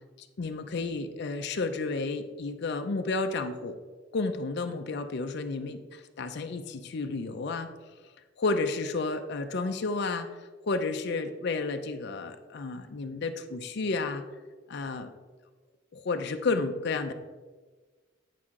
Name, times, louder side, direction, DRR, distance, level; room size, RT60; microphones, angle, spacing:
voice 1, 0.4-3.8 4.1-7.7 8.4-14.2 14.7-15.1 15.9-17.1, left 3 dB, 55° left, 7 dB, 0.5 m, -31 dB
8.3 x 6.2 x 3.7 m, 1.4 s
head